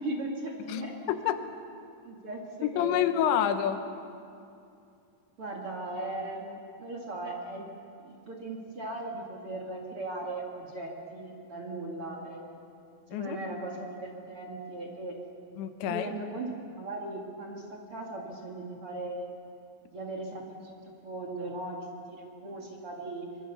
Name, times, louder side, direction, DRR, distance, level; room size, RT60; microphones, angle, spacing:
voice 1, 0.0-0.9 2.0-3.2 5.4-7.7 8.0-12.6 13.1-15.1 15.8-19.3 19.9-23.3, right 2 dB, 40° right, -1 dB, 2.3 m, -38 dB
voice 2, 0.7-1.4 2.6-3.8 13.1-13.4 15.6-16.1, left 10 dB, 90° left, 9 dB, 3.4 m, -28 dB
24.0 x 22.5 x 7.0 m, 2.5 s
omnidirectional pair, 5.0 m